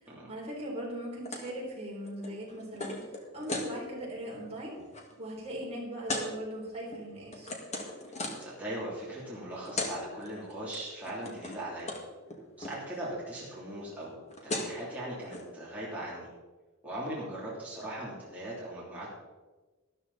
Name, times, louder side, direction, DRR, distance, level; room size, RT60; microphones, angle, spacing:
voice 1, 0.0-3.0 3.3-4.8 5.2-7.5, right 1 dB, 30° right, -3 dB, 3.6 m, -39 dB
sound 1, 1.3-1.5 1.8-3.7 4.2-4.4 4.7-5.0 6.1-6.3 6.9-8.5 9.4-9.5 9.7-10.0 10.2-10.8 11.0-11.6 11.9-12.0 12.3-12.8 14.0-14.1 14.3-14.8 15.3-15.4, left 2 dB, 30° left, 1.9 m, -37 dB
voice 2, 8.4-12.0 12.6-16.3 16.8-19.1, right 1 dB, 5° right, -8 dB, 3.1 m, -39 dB
13.0 x 12.5 x 4.1 m, 1.2 s
head